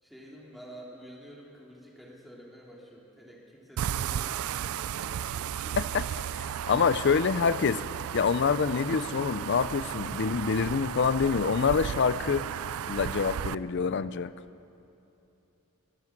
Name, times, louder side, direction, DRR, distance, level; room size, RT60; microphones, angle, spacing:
voice 1, 0.0-5.8, equal, ahead, -4 dB, 2.6 m, -49 dB
sound 1, 3.8-13.5, right 9 dB, 85° right, 0.4 m, -34 dB
voice 2, 6.4-7.8 8.1-12.5 12.9-14.3, left 5 dB, 55° left, 15 dB, 0.4 m, -26 dB
22.0 x 11.0 x 6.0 m, 2.8 s
head